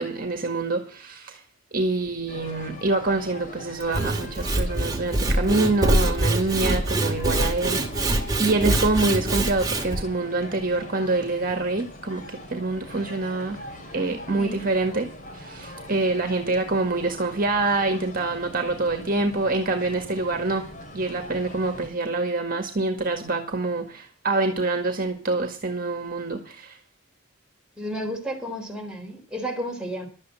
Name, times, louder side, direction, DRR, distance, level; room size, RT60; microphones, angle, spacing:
voice 1, 0.0-1.4 1.7-13.6 13.9-15.1 15.3-20.7 20.9-26.8, right 2 dB, 45° right, 1.8 m, -26 dB
sound 1, 2.3-21.9, left 1 dB, 40° left, 3.7 m, -42 dB
Sawing / Wood, 3.8-10.0, right 1 dB, 20° right, 2.2 m, -24 dB
voice 2, 14.3-14.7 27.8-30.1, equal, 5° right, 4.1 m, -32 dB
12.0 x 8.5 x 7.8 m
head